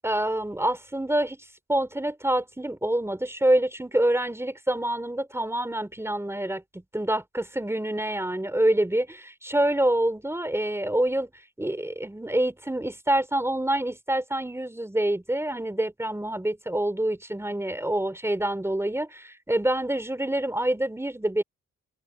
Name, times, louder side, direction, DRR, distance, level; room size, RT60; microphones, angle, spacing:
voice 1, 0.0-9.2 9.4-11.3 11.6-21.4, right 1 dB, 10° right, 4.3 m, -26 dB
cardioid pair, 90°, 30 cm